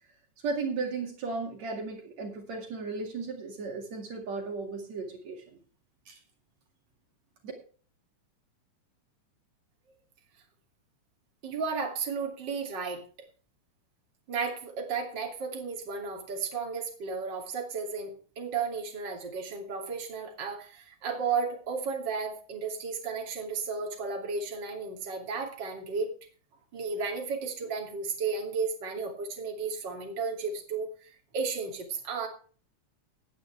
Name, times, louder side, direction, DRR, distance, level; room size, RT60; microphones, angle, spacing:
voice 1, 0.4-5.4 6.1-6.2, right 4 dB, 65° right, 2 dB, 3.4 m, -35 dB
voice 2, 11.4-13.0 14.3-26.1 26.7-32.3, right 5 dB, 35° right, 1 dB, 3.2 m, -33 dB
18.5 x 9.1 x 3.4 m, 0.40 s
omnidirectional pair, 3.4 m